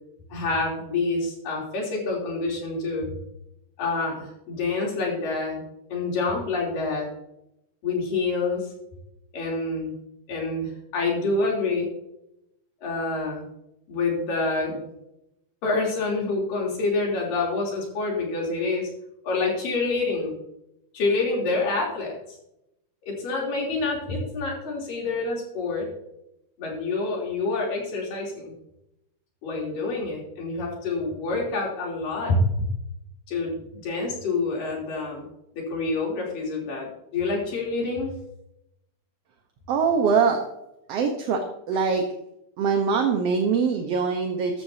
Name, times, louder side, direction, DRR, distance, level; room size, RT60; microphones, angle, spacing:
voice 1, 0.3-3.1 3.8-5.6 5.9-7.1 7.8-8.6 9.3-9.9 10.3-11.9 12.8-13.5 13.9-14.8 15.6-18.9 19.2-20.4 20.9-22.4 23.1-25.9 26.6-28.5 29.4-32.4 33.3-33.6 33.8-35.3 35.5-36.9 37.1-38.1, left 3 dB, 90° left, -2 dB, 5.1 m, -27 dB
voice 2, 39.7-40.4 40.9-42.0 42.6-44.6, right 5 dB, 60° right, 4 dB, 1.8 m, -23 dB
14.5 x 12.5 x 2.8 m, 0.84 s
omnidirectional pair, 3.8 m